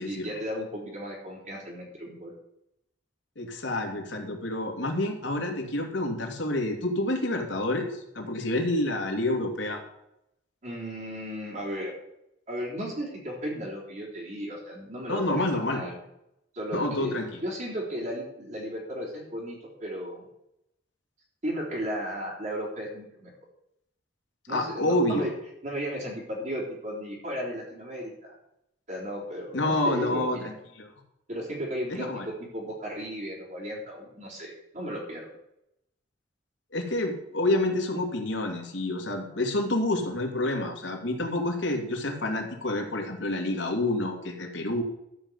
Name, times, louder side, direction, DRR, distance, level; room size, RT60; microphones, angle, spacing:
voice 1, 0.0-2.3 10.6-11.9 12.5-16.0 16.5-20.3 21.4-23.3 24.5-25.3 25.6-28.4 28.9-30.5 31.3-35.3, equal, 40° right, -5 dB, 3.9 m, -35 dB
voice 2, 3.4-9.8 15.1-15.8 16.7-17.4 24.5-25.3 29.5-30.9 31.9-32.3 36.7-44.8, left 1 dB, 80° left, 2 dB, 2.8 m, -28 dB
13.5 x 5.7 x 8.1 m, 0.81 s
head